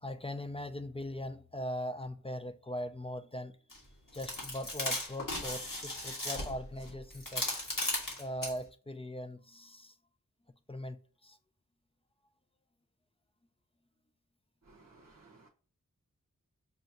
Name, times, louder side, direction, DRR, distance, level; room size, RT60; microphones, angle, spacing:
voice 1, 0.0-3.6 4.1-7.5 8.2-9.9 10.7-11.0 11.2-11.4, left 1 dB, 20° left, 0.3 m, -40 dB
sound 1, 3.7-3.8 4.1-8.6, left 1 dB, 65° left, 1.6 m, -36 dB
voice 2, 14.7-15.5, right 3 dB, 50° right, 0.8 m, -59 dB
5.3 x 2.2 x 2.7 m
wide cardioid pair, 50°, 35 cm